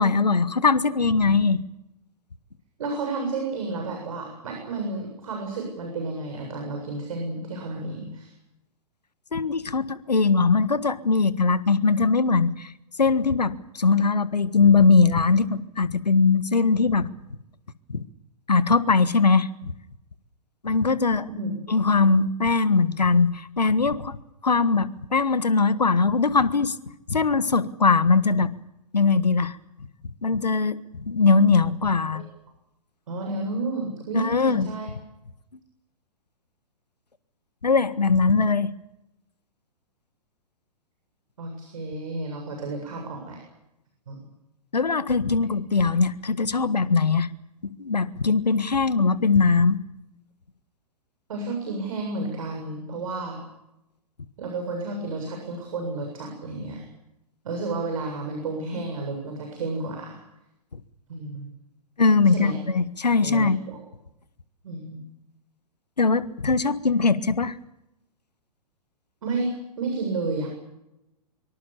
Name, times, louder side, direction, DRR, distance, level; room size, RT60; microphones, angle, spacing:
voice 1, 0.0-1.6 9.3-12.7 13.0-17.1 17.9-18.0 18.5-19.7 20.6-21.3 21.7-24.2 24.4-26.7 27.1-28.5 28.9-29.6 30.2-32.2 34.1-34.7 37.6-38.7 44.7-47.3 47.8-49.8 62.0-63.6 66.0-67.5, left 4 dB, 75° left, 16 dB, 1.6 m, -21 dB
voice 2, 2.8-8.3 21.3-21.6 32.1-32.2 33.1-34.9 41.4-43.4 44.1-44.2 51.3-53.4 54.4-56.9 57.4-60.2 61.1-61.5 62.3-62.6 63.2-63.8 64.6-65.0 69.2-70.5, right 3 dB, 55° right, 2 dB, 7.6 m, -31 dB
24.5 x 24.0 x 7.0 m, 0.90 s
figure-of-eight pair, 115°, 21 cm